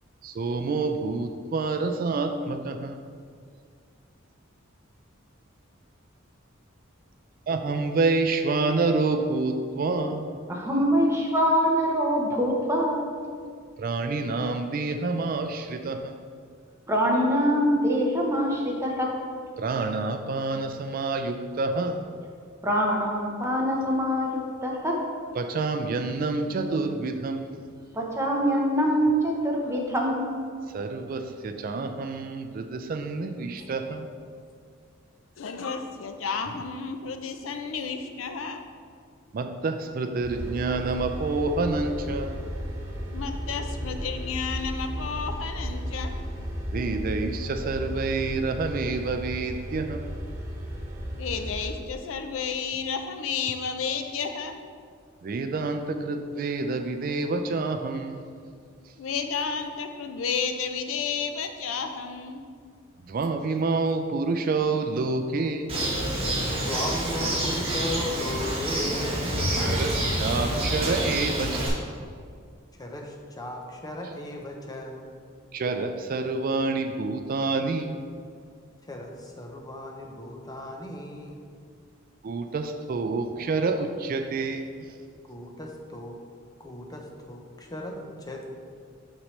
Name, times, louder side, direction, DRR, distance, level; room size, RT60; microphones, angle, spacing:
voice 1, 0.2-3.1 7.5-10.4 13.8-16.2 19.6-22.1 25.4-27.7 30.7-34.1 39.3-42.5 46.7-50.1 55.2-58.3 63.0-65.7 69.5-72.0 75.5-78.0 82.2-84.9, right 3 dB, 45° right, 7 dB, 0.4 m, -28 dB
voice 2, 10.5-13.1 16.9-19.2 22.6-25.0 27.9-30.5, equal, 15° right, -1 dB, 0.9 m, -24 dB
voice 3, 35.4-38.6 43.1-46.2 51.2-54.6 59.0-62.4, left 5 dB, 80° left, 6 dB, 0.5 m, -32 dB
sound 1, 40.2-51.7, equal, 65° right, 1.5 m, -34 dB
Bird, 65.7-71.7, right 1 dB, 30° right, 1.3 m, -27 dB
voice 4, 66.6-69.6 70.2-70.3 72.8-75.1 78.8-81.5 85.3-86.2 86.6-88.4, left 1 dB, 20° left, 1 dB, 0.7 m, -36 dB
6.5 x 6.0 x 3.2 m, 2.2 s
head